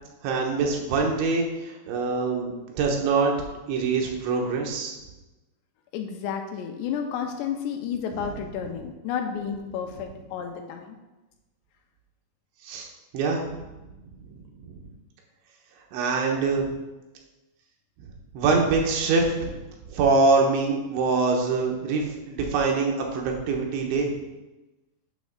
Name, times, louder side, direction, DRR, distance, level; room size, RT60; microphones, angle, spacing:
voice 1, 0.2-3.4 3.7-5.0 12.6-12.9 13.1-13.5 14.7-14.8 15.9-16.7 18.4-19.6 19.9-24.1, right 4 dB, 85° right, 1 dB, 3.5 m, -24 dB
voice 2, 5.9-11.0, left 7 dB, 85° left, 4 dB, 2.7 m, -31 dB
9.0 x 3.1 x 6.5 m, 1.1 s
omnidirectional pair, 5.1 m